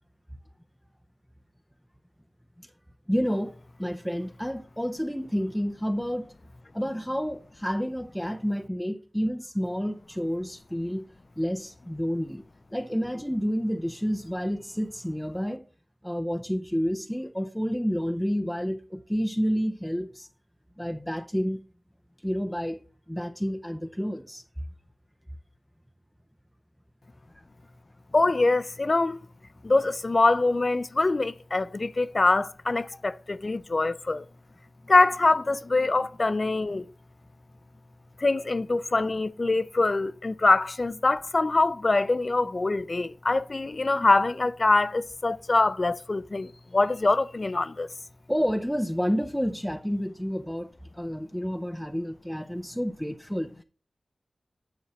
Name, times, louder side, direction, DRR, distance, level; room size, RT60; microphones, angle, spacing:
voice 1, 3.1-6.3 6.7-11.0 11.4-12.4 12.7-15.6 16.0-20.3 20.8-21.6 22.2-22.8 23.1-24.4 48.3-50.7 50.9-53.5, equal, ahead, 0.5 m, -29 dB
voice 2, 28.1-29.2 29.6-34.2 34.9-36.8 38.2-47.9, left 2 dB, 50° left, 0.4 m, -24 dB
9.4 x 6.1 x 3.1 m
wide cardioid pair, 70°, 0 cm